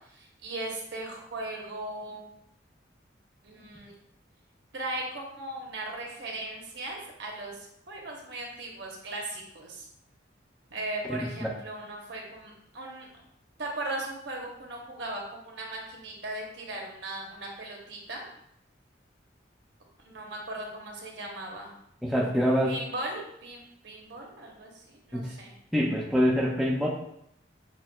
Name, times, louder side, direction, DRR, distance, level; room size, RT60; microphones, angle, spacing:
voice 1, 0.1-2.3 3.4-3.9 4.7-7.6 7.9-9.9 10.7-13.1 13.6-18.3 20.0-21.7 22.7-25.5, right 2 dB, 70° right, -1 dB, 0.8 m, -38 dB
voice 2, 11.1-11.5 22.0-22.7 25.1-25.3 25.7-26.9, equal, ahead, -3 dB, 0.4 m, -25 dB
6.0 x 2.2 x 2.2 m, 0.74 s
head